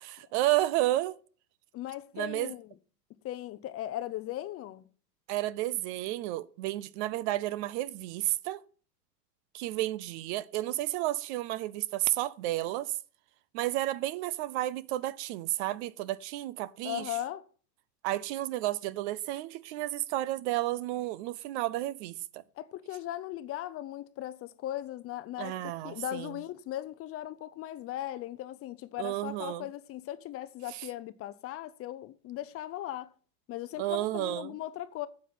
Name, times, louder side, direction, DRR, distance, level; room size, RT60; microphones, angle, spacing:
voice 1, 0.2-1.2 2.1-2.5 5.3-8.6 9.5-13.0 13.5-17.2 18.0-22.4 25.4-26.3 29.0-29.7 30.7-30.9 33.8-34.5, right 15 dB, 45° right, 0.6 m, -32 dB
voice 2, 1.7-2.7 3.2-4.9 16.8-17.4 22.6-33.1 33.5-35.1, left 13 dB, 30° left, 0.7 m, -38 dB
9.7 x 7.4 x 5.9 m
hypercardioid pair, 110°, 49 cm